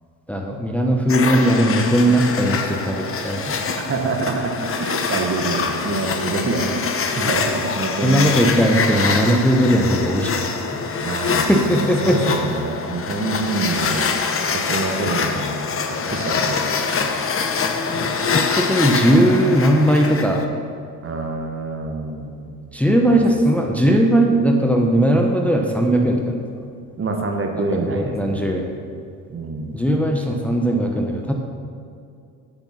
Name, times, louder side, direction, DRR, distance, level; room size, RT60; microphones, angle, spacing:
voice 1, 0.3-3.6 7.2-7.3 8.0-10.4 11.2-12.2 18.1-20.5 22.7-26.5 27.8-28.7 29.7-31.3, equal, 5° left, 1 dB, 1.0 m, -18 dB
sound 1, 1.1-20.4, left 5 dB, 35° left, 1.0 m, -24 dB
voice 2, 3.9-8.2 11.0-14.1 14.4-15.6 15.9-17.1 21.0-22.7 23.1-23.2 27.0-28.5 29.3-29.8, right 3 dB, 35° right, 3 dB, 1.3 m, -26 dB
9.0 x 6.7 x 5.9 m, 2.4 s
supercardioid pair, 80°, 37 cm